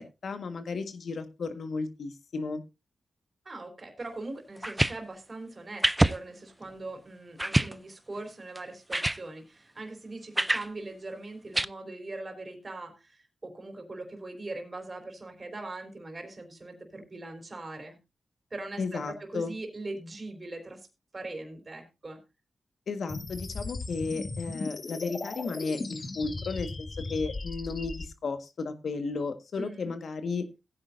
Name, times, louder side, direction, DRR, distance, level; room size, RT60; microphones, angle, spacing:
voice 1, 0.0-2.6 18.8-19.5 22.9-30.5, left 4 dB, 75° left, 9 dB, 1.6 m, -34 dB
voice 2, 3.5-18.0 18.5-20.9 21.1-22.2 29.6-29.9, right 2 dB, 40° right, 4 dB, 3.9 m, -41 dB
sound 1, 4.6-5.0 5.8-6.2 6.7-6.8 7.4-7.7 8.6-8.7 8.9-9.2 10.4-10.7 11.5-11.7, right 1 dB, 10° right, 0.5 m, -25 dB
sound 2, 23.1-28.0, left 3 dB, 50° left, 1.7 m, -37 dB
16.5 x 9.6 x 2.7 m, 0.26 s
cardioid pair, 70°, 0 cm